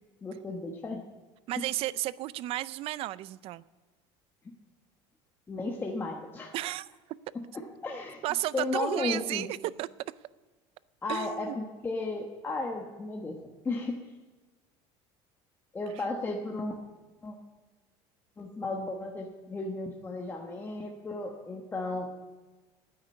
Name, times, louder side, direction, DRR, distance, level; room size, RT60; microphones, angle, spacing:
voice 1, 0.2-1.0 1.6-1.7 4.4-4.5 5.5-6.5 7.3-8.2 8.5-9.5 11.0-13.4 13.6-14.1 15.7-16.8 17.2-17.4 18.4-22.1, left 2 dB, 20° left, 1.2 m, -34 dB
voice 2, 1.5-3.6 6.5-6.9 8.2-9.5 9.8-9.9 11.1-11.6, right 15 dB, 55° right, 0.4 m, -33 dB
9.6 x 8.9 x 9.4 m
cardioid pair, 135°, 12 cm